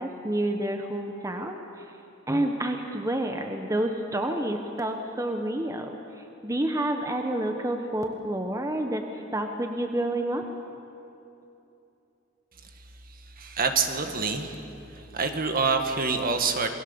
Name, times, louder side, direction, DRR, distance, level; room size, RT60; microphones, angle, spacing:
voice 1, 0.0-1.6 2.3-6.0 6.4-9.0 9.3-10.4, right 1 dB, 15° right, 4 dB, 1.1 m, -29 dB
voice 2, 13.4-14.6 15.1-16.7, right 4 dB, 45° right, 6 dB, 1.7 m, -26 dB
28.0 x 20.5 x 7.1 m, 2.9 s
head